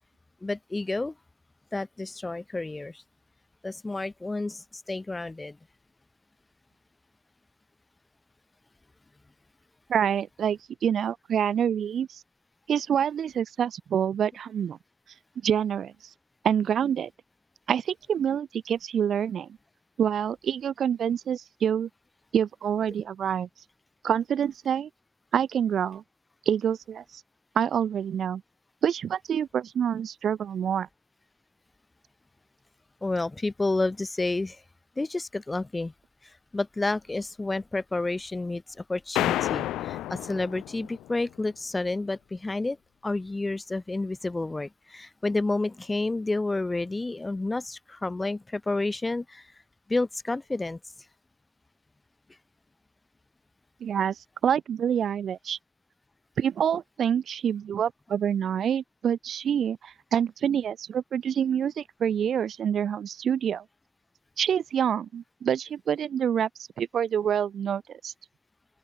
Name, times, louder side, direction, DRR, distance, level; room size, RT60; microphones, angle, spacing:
voice 1, 0.4-1.1 1.7-3.0 3.6-5.6 33.0-34.6 35.0-35.9 36.2-42.8 43.0-49.5 49.9-50.8, left 2 dB, 20° left, 2.8 m, -30 dB
voice 2, 9.9-12.2 12.7-14.8 15.4-15.9 16.4-17.1 17.7-19.5 20.0-21.9 22.3-23.5 24.0-24.9 25.3-26.0 26.5-27.0 27.6-28.4 28.8-30.9 53.8-54.2 54.4-55.6 56.4-63.6 64.4-66.5 66.8-68.1, right 8 dB, 60° right, 5.9 m, -26 dB
sound 1, 39.2-41.1, left 14 dB, 85° left, 6.4 m, -29 dB
open air
cardioid pair, 90°, 0 cm